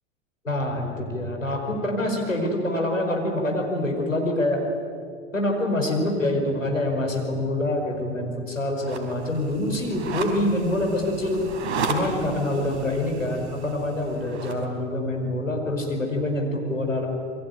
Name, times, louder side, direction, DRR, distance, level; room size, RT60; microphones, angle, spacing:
voice 1, 0.4-4.6 5.3-11.4 11.9-17.1, left 1 dB, 90° left, 2 dB, 5.1 m, -26 dB
sound 1, 8.8-14.6, right 4 dB, 60° right, 4.3 m, -34 dB
27.5 x 23.0 x 9.2 m, 2.4 s
figure-of-eight pair, 90°, 38 cm